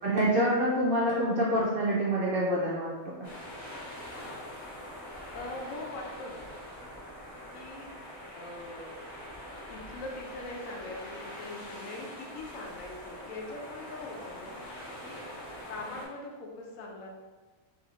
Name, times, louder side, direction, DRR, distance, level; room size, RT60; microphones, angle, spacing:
voice 1, 0.0-2.9 3.2-3.3, equal, 65° right, -6 dB, 0.5 m, -26 dB
sound 1, 3.2-16.1, left 1 dB, 30° left, 0.6 m, -44 dB
voice 2, 5.3-6.5 7.5-7.9 8.3-9.0 9.7-14.6 15.0-15.2 15.7-17.1, left 2 dB, 85° left, 0 dB, 1.0 m, -42 dB
2.6 x 2.5 x 2.9 m, 1.3 s
omnidirectional pair, 1.4 m